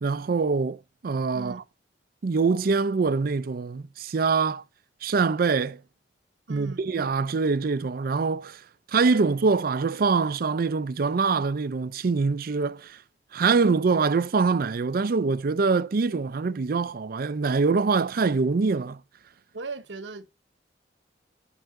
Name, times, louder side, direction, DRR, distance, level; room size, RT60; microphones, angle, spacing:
voice 1, 0.0-1.6 2.2-4.6 5.0-5.8 6.5-8.6 8.9-13.0 13.3-19.0, right 4 dB, 55° right, 0.5 m, -24 dB
voice 2, 6.5-6.8 19.5-20.3, right 3 dB, 85° right, 0.9 m, -38 dB
9.0 x 4.6 x 6.4 m
head